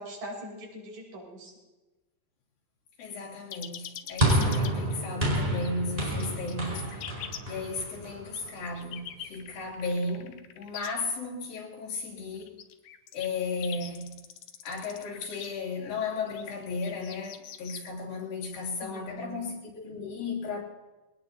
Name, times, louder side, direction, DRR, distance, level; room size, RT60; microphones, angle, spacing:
voice 1, 0.0-1.5 18.8-19.4, equal, 75° right, 7.1 m, -41 dB
voice 2, 3.0-7.1 7.5-12.5 13.1-14.2 14.6-20.6, left 3 dB, 85° left, 5.0 m, -35 dB
sound 1, 3.5-4.7 5.3-5.7 6.1-7.4 8.3-10.9 12.2-15.5 16.3-17.9, left 10 dB, 70° left, 2.1 m, -43 dB
sound 2, 4.2-8.6, right 1 dB, 15° right, 4.8 m, -29 dB
22.0 x 18.5 x 2.8 m
omnidirectional pair, 4.0 m